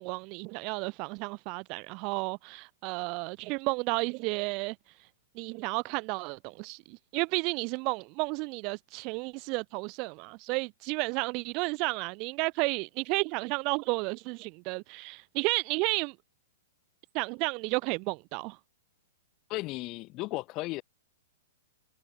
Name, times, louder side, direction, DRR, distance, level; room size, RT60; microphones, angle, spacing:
voice 1, 0.0-4.7 5.4-16.1 17.1-18.6, right 29 dB, 35° right, 1.2 m, -32 dB
voice 2, 19.5-20.8, left 21 dB, 30° left, 6.7 m, -35 dB
hypercardioid pair, 150°, 0 cm